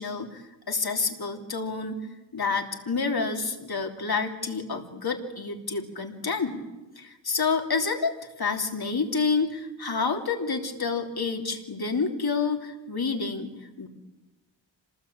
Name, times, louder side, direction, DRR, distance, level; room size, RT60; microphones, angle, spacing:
voice 1, 0.0-2.0 2.3-6.6 7.0-13.9, left 4 dB, 55° left, 3 dB, 3.2 m, -29 dB
27.0 x 20.0 x 8.8 m, 1.1 s
wide cardioid pair, 105°, 44 cm